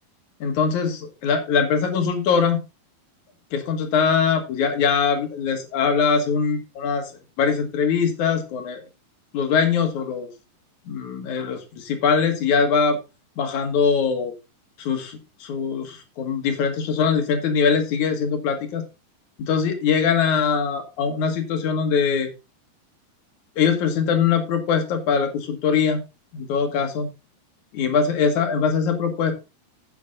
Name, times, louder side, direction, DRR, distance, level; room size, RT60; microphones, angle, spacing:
voice 1, 0.4-2.6 3.5-7.1 7.4-8.8 9.3-10.3 10.9-13.0 13.4-14.3 14.8-18.8 19.4-22.3 23.6-26.0 26.3-27.1 27.7-29.3, left 6 dB, 60° left, 6 dB, 2.4 m, -22 dB
9.3 x 7.8 x 3.8 m, 0.29 s
omnidirectional pair, 4.5 m